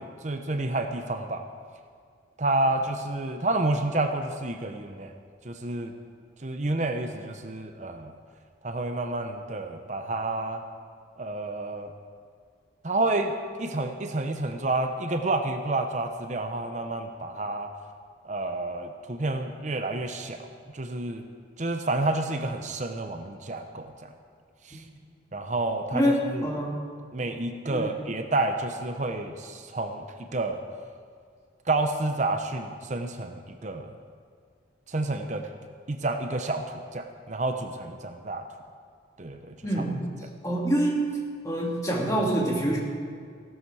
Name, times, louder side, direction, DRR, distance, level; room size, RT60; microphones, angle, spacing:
voice 1, 0.0-1.4 2.4-5.1 5.4-5.9 6.4-8.1 8.6-10.6 11.2-11.9 12.8-13.3 13.6-17.7 18.2-21.2 21.6-24.1 24.6-24.8 25.3-26.0 26.3-26.5 27.1-30.6 31.7-33.9 34.9-35.5 35.9-38.5 39.2-39.8, right 2 dB, 40° right, 6 dB, 0.7 m, -29 dB
voice 2, 25.9-26.8 27.7-27.9 39.6-39.9 40.4-41.0 41.4-42.8, equal, 15° left, -3 dB, 2.5 m, -26 dB
16.5 x 12.5 x 4.8 m, 2.1 s
head